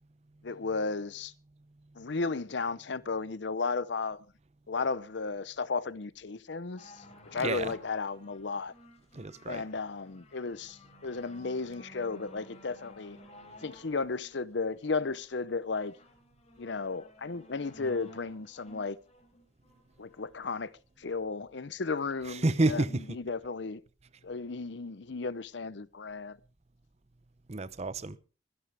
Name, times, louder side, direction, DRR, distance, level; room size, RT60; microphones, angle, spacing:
voice 1, 0.4-1.3 2.0-4.2 4.7-7.0 7.3-8.7 9.5-13.2 13.6-15.9 16.6-19.0 20.0-20.7 21.0-23.8 24.2-26.4, left 4 dB, 65° left, 0.7 m, -34 dB
sound 1, 6.8-20.3 21.1-21.2, equal, 35° left, 4.2 m, -55 dB
voice 2, 7.4-7.7 9.1-9.6 22.2-23.2 27.5-28.2, right 2 dB, 35° right, 0.7 m, -30 dB
23.5 x 11.0 x 3.4 m
head